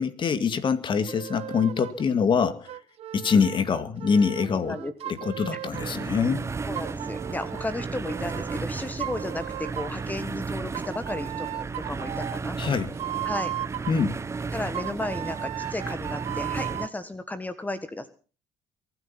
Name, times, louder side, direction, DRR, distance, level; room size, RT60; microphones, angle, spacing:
voice 1, 0.0-2.7 3.1-4.8 5.1-6.4 12.6-12.9 13.9-14.1, left 6 dB, 45° left, 12 dB, 2.0 m, -24 dB
sound 1, 1.1-2.1 2.7-6.1 6.7-8.6 9.0-10.1 10.7-14.1 14.7-16.9, right 12 dB, 60° right, 0.9 m, -36 dB
voice 2, 4.5-4.9 5.5-5.6 6.7-12.6 13.2-13.5 14.5-18.1, left 2 dB, 15° left, 12 dB, 1.5 m, -34 dB
sound 2, 5.7-16.9, right 4 dB, 25° right, 0.7 m, -34 dB
23.0 x 9.7 x 5.9 m, 0.38 s
supercardioid pair, 90°, 12 cm